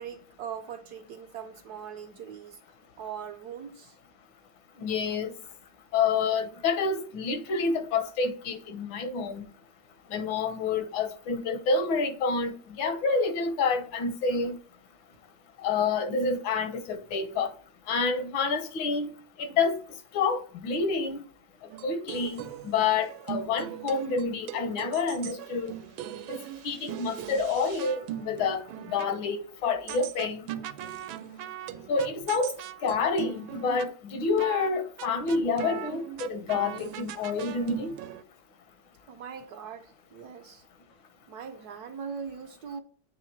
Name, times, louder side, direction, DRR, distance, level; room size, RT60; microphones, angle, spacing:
voice 1, 0.0-2.6 3.0-4.0 39.1-40.6 41.3-42.8, right 7 dB, 70° right, 1.0 m, -40 dB
voice 2, 4.8-5.3 5.9-9.4 10.1-14.6 15.6-17.5 17.9-19.1 19.4-19.7 20.1-21.2 21.8-25.7 26.3-26.4 26.6-28.6 28.9-30.4 31.9-32.5 32.8-37.9, left 4 dB, 80° left, 1.6 m, -28 dB
sound 1, 21.7-29.1 29.9-33.9 34.4-34.7 35.0-38.2, right 11 dB, 90° right, 1.4 m, -40 dB
8.2 x 3.0 x 4.4 m
omnidirectional pair, 2.1 m